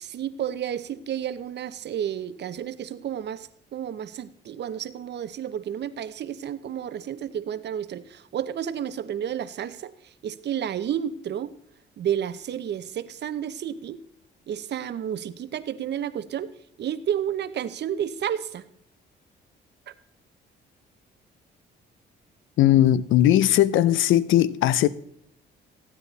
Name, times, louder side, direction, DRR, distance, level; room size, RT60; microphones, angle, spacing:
voice 1, 0.0-11.6 12.0-14.0 14.5-16.5 16.8-18.6, right 9 dB, 60° right, 0.8 m, -31 dB
voice 2, 22.6-24.9, left 12 dB, 80° left, 0.6 m, -19 dB
15.0 x 9.6 x 4.0 m
cardioid pair, 90°, 20 cm